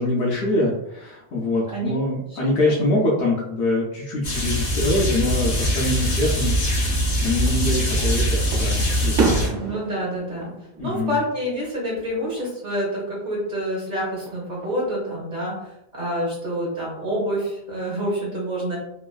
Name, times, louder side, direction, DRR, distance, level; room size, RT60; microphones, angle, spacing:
voice 1, 0.0-6.9 7.2-9.6 10.8-11.2, left 2 dB, 85° left, -5 dB, 0.9 m, -24 dB
sound 1, 4.2-9.5, equal, 45° left, 0.9 m, -22 dB
Fireworks, 7.3-8.0 8.5-11.6 12.0-12.5 14.1-14.9, right 4 dB, 90° right, 0.9 m, -28 dB
voice 2, 9.5-10.5 10.8-18.8, equal, 45° right, -5 dB, 1.0 m, -27 dB
3.0 x 2.4 x 2.3 m, 0.82 s
omnidirectional pair, 1.1 m